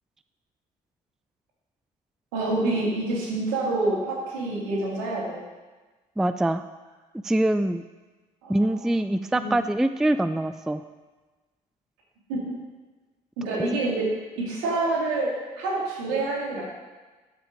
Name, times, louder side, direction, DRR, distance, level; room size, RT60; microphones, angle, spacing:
voice 1, 2.3-5.4 8.4-8.8 9.3-9.6 12.3-12.6 13.4-16.6, right 2 dB, 70° right, -2 dB, 2.2 m, -27 dB
voice 2, 6.2-6.6 7.2-7.8 8.5-10.8 13.7-13.8, right 1 dB, ahead, 12 dB, 0.3 m, -24 dB
12.5 x 5.3 x 5.0 m, 1.3 s
figure-of-eight pair, 45°, 21 cm